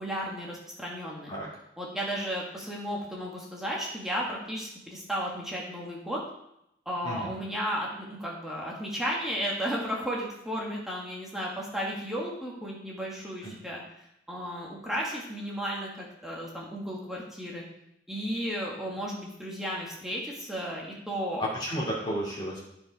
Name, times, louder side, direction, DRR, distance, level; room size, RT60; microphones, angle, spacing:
voice 1, 0.0-1.3 1.8-6.2 6.8-13.8 14.3-17.6 18.1-21.4, equal, ahead, -3 dB, 1.6 m, -34 dB
voice 2, 21.4-22.6, equal, 25° left, -6 dB, 2.4 m, -32 dB
13.0 x 4.9 x 4.6 m, 0.80 s
head